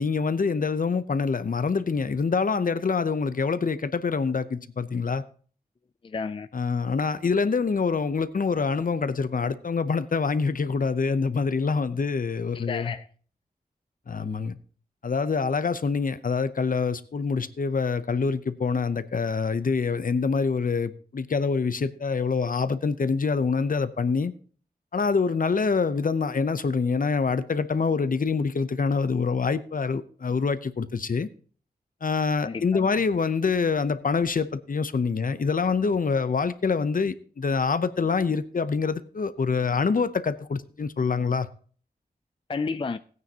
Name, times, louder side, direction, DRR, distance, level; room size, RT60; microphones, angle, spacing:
voice 1, 0.0-5.2 6.5-12.9 14.1-14.6 15.0-24.3 24.9-31.3 32.0-41.5, left 5 dB, 60° left, 0.7 m, -25 dB
voice 2, 6.0-6.5 12.5-13.1 32.4-32.9 42.5-43.0, left 4 dB, 35° left, 0.4 m, -31 dB
16.0 x 9.4 x 2.9 m
wide cardioid pair, 85°, 16 cm